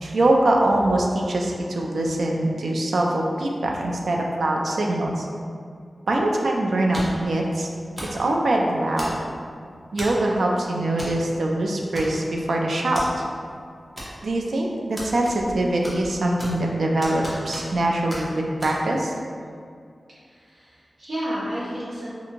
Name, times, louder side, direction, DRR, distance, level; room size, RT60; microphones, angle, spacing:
voice 1, 0.0-5.3 6.1-7.7 8.1-9.1 9.9-13.2 14.2-19.1, right 1 dB, 85° right, 0 dB, 0.3 m, -23 dB
sound 1, 6.9-7.3 8.0-8.2 9.0-9.4 10.0-10.3 11.0-11.2 11.4-11.5 11.9-12.4 12.9-13.1 14.0-14.4 15.0-15.6 15.8-16.7 17.0-17.8 18.1-18.2 18.6-18.7, equal, 5° right, 0.7 m, -35 dB
voice 2, 20.2-22.1, equal, 65° right, -10 dB, 1.1 m, -31 dB
2.6 x 2.5 x 2.8 m, 2.3 s
wide cardioid pair, 110°, 0 cm